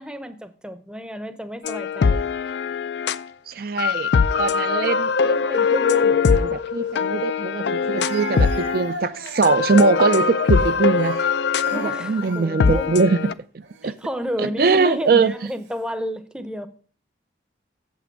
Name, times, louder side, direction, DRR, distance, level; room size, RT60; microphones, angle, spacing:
voice 1, 0.0-2.2 11.7-12.9 13.8-16.7, equal, 5° right, 0.7 m, -31 dB
sound 1, 1.6-3.2 3.8-8.9 9.3-13.3, left 5 dB, 70° left, 0.4 m, -21 dB
voice 2, 3.5-4.1 4.4-11.2 11.7-13.2 13.8-14.0 14.4-15.3, right 4 dB, 50° right, 0.4 m, -22 dB
Speech, 6.8-6.9 8.0-12.8 13.6-13.9 14.8-15.4, right 2 dB, 65° right, 1.5 m, -37 dB
8.4 x 7.5 x 4.5 m
head